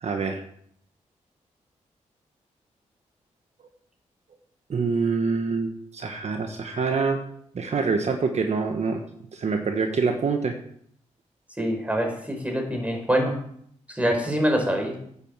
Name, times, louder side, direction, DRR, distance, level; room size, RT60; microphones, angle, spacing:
voice 1, 0.0-0.4 4.7-7.2 7.5-9.0 9.3-10.5, right 4 dB, 60° right, 5 dB, 1.3 m, -25 dB
voice 2, 11.6-13.3 13.9-14.9, equal, 10° right, 3 dB, 4.7 m, -25 dB
9.6 x 8.1 x 7.5 m, 0.68 s
cardioid pair, 70°, 13 cm